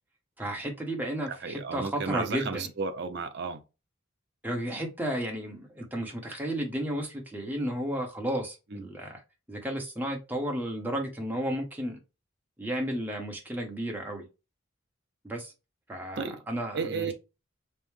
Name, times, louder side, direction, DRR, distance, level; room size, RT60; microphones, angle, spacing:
voice 1, 0.4-2.7 4.4-9.2 9.5-12.0 12.6-14.2 15.2-15.5 15.9-17.1, right 1 dB, 10° right, 0.9 m, -33 dB
voice 2, 1.3-3.6 8.7-8.9 16.2-16.4 16.7-17.1, right 4 dB, 55° right, 0.5 m, -33 dB
5.3 x 2.1 x 3.1 m
head